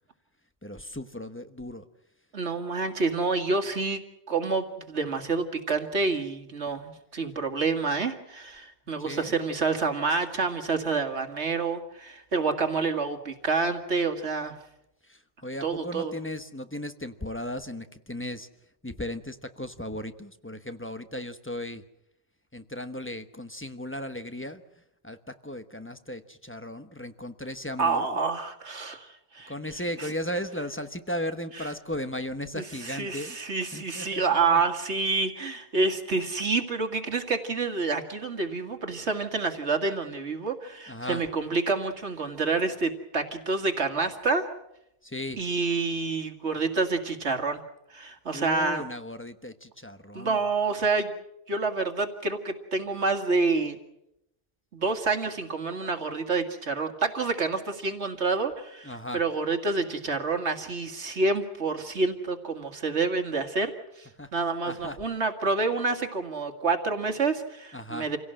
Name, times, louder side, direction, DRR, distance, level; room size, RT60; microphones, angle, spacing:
voice 1, 0.6-1.8 9.1-9.3 15.4-18.5 18.8-21.8 22.5-24.6 25.0-25.2 25.4-28.0 29.5-33.4 33.7-34.6 40.9-41.2 45.1-45.4 48.3-50.4 58.8-59.2 64.2-64.3 64.7-65.0 67.7-68.1, left 1 dB, 10° left, 9 dB, 1.0 m, -36 dB
voice 2, 2.3-4.0 4.3-14.5 15.6-16.1 27.8-30.1 31.5-31.7 32.5-44.4 45.4-47.6 47.9-48.8 50.1-51.2 51.5-53.8 54.7-63.7 64.0-68.2, right 4 dB, 75° right, 5 dB, 2.3 m, -28 dB
28.0 x 17.0 x 7.7 m, 0.83 s
omnidirectional pair, 1.1 m